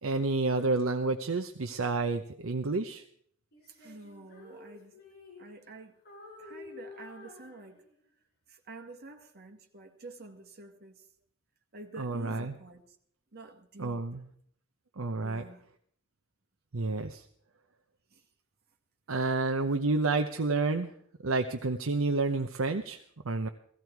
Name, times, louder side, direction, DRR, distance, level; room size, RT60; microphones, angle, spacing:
voice 1, 0.0-3.0 12.0-12.6 13.8-14.3 15.0-15.4 16.7-17.2 19.1-20.9 21.2-23.5, right 3 dB, 70° right, 0.8 m, -30 dB
Female singing, 3.5-5.7 6.0-8.1, left 3 dB, 50° left, 6.9 m, -50 dB
voice 2, 3.8-4.9 5.4-6.0 6.4-7.8 8.5-11.0 11.7-12.8 13.3-14.1 15.2-15.6 18.1-18.2, right 2 dB, 50° right, 1.9 m, -48 dB
16.5 x 15.5 x 4.7 m
head